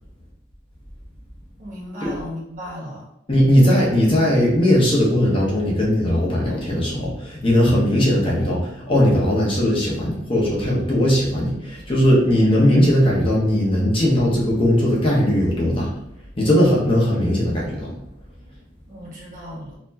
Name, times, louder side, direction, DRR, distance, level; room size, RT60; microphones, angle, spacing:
voice 1, 1.6-3.1 18.9-19.7, equal, 45° right, -4 dB, 1.3 m, -35 dB
voice 2, 3.3-15.9 16.4-17.9, equal, 30° left, -4 dB, 1.1 m, -18 dB
4.2 x 2.9 x 2.8 m, 0.79 s
head